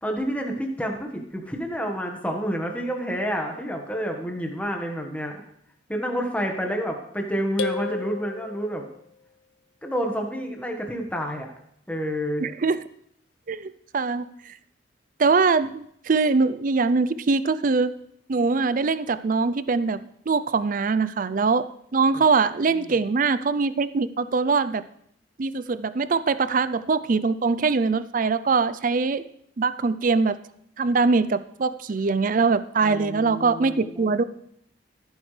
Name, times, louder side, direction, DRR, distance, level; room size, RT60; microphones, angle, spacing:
voice 1, 0.0-5.4 5.9-8.9 9.8-11.5 11.9-12.5 22.7-22.9 32.8-34.1, equal, 10° left, 2 dB, 1.4 m, -29 dB
sound 1, 7.6-9.1, left 5 dB, 85° left, 0.7 m, -33 dB
voice 2, 12.4-12.8 13.5-14.5 15.2-17.9 18.3-21.6 21.9-24.8 25.4-29.2 29.6-30.4 30.8-34.2, right 4 dB, 45° right, 14 dB, 0.5 m, -22 dB
15.5 x 9.0 x 3.3 m, 0.71 s
head